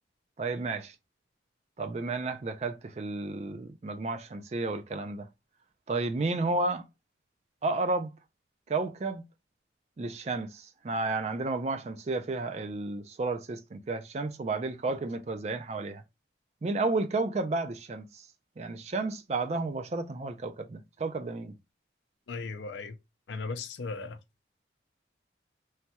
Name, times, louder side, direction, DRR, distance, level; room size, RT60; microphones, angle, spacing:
voice 1, 0.4-0.9 1.8-5.3 5.9-6.8 7.6-8.1 8.7-9.2 10.0-16.0 16.6-18.1 18.6-21.5, right 3 dB, 35° right, 0.3 m, -32 dB
voice 2, 22.3-23.0 23.3-24.2, left 4 dB, 75° left, 0.5 m, -37 dB
3.2 x 2.2 x 2.7 m
head